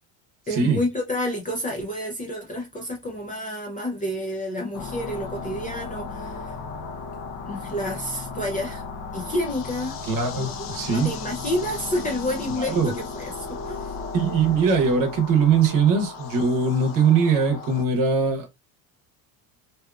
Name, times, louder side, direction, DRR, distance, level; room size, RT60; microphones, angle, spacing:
voice 1, 0.5-6.6 7.2-8.8 9.1-10.0 10.4-13.9, left 1 dB, 20° left, 0.3 m, -30 dB
sound 1, 4.7-17.8, left 4 dB, 85° left, 0.7 m, -35 dB
voice 2, 10.0-11.1 12.6-12.9 14.1-18.5, right 5 dB, 50° right, 0.9 m, -21 dB
2.7 x 2.4 x 2.2 m
cardioid pair, 140°, 43 cm